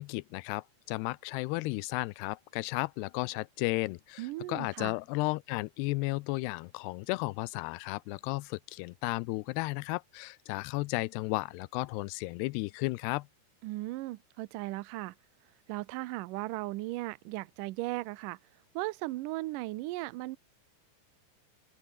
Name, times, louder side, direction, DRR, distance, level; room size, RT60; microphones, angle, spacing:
voice 1, 0.0-13.3, left 23 dB, 90° left, 2.7 m, -34 dB
voice 2, 4.2-5.0 13.6-15.1 15.7-18.4 18.7-20.4, right 19 dB, 85° right, 1.9 m, -37 dB
open air
omnidirectional pair, 4.7 m